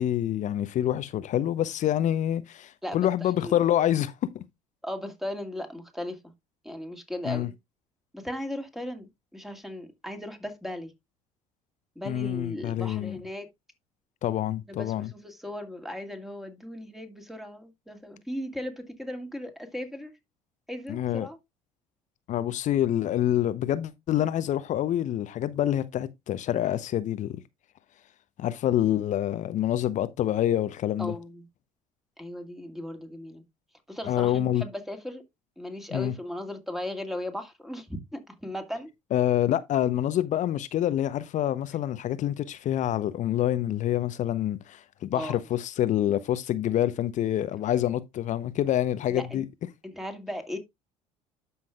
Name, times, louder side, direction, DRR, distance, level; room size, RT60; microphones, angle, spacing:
voice 1, 0.0-4.4 7.2-7.5 12.1-13.2 14.2-15.1 20.9-21.3 22.3-27.4 28.4-31.1 34.0-34.6 35.9-36.1 39.1-49.4, left 12 dB, 45° left, 0.8 m, -27 dB
voice 2, 2.8-3.6 4.8-6.2 6.6-7.6 8.1-10.9 12.0-13.5 14.7-20.1 20.7-21.4 31.0-31.5 32.2-33.4 33.9-35.2 35.6-38.9 45.1-45.4 49.1-49.4 49.8-50.6, left 1 dB, ahead, 2.2 m, -37 dB
12.5 x 5.6 x 2.3 m
figure-of-eight pair, 60°, 17 cm